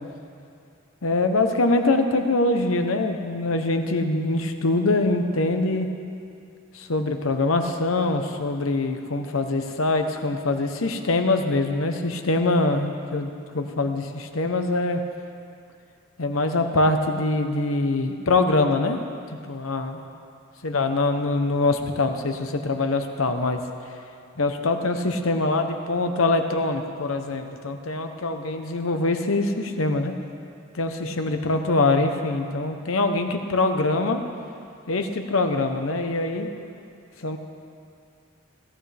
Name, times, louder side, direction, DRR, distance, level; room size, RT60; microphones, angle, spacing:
voice 1, 1.0-5.9 6.7-15.0 16.2-19.0 19.5-20.0 20.6-23.6 24.4-30.1 30.7-34.2 34.9-36.5 37.2-37.4, left 2 dB, 80° left, 6 dB, 0.9 m, -23 dB
17.5 x 12.5 x 3.4 m, 2.5 s
head